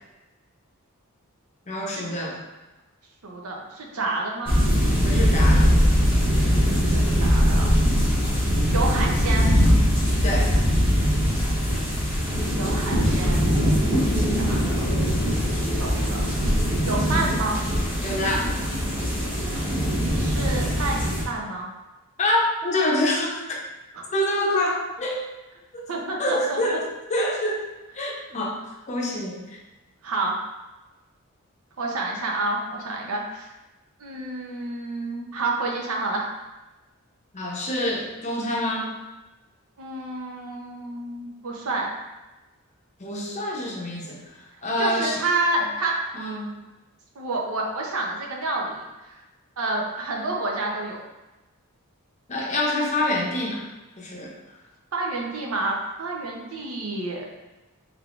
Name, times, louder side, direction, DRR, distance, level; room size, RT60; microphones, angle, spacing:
voice 1, 1.7-2.4 5.0-5.7 10.2-10.5 18.0-18.5 22.2-23.6 24.1-25.2 25.7-25.8 26.2-26.8 27.1-27.7 27.9-29.6 33.0-33.1 37.3-39.0 43.0-45.2 46.1-46.5 52.3-53.6 54.0-54.6, left 1 dB, 35° left, -2 dB, 0.6 m, -26 dB
voice 2, 3.2-4.5 6.7-7.8 8.7-9.5 12.6-13.5 13.9-14.8 15.6-16.3 16.9-17.6 20.1-21.7 24.0-24.1 25.9-26.6 30.0-30.4 31.8-33.5 34.0-36.3 39.8-41.9 44.8-45.9 47.2-49.1 49.6-51.0 54.9-57.3, right 2 dB, 80° right, -1 dB, 0.7 m, -29 dB
sound 1, 4.5-21.2, equal, 10° right, 1.0 m, -21 dB
3.5 x 3.4 x 2.4 m, 1.1 s
head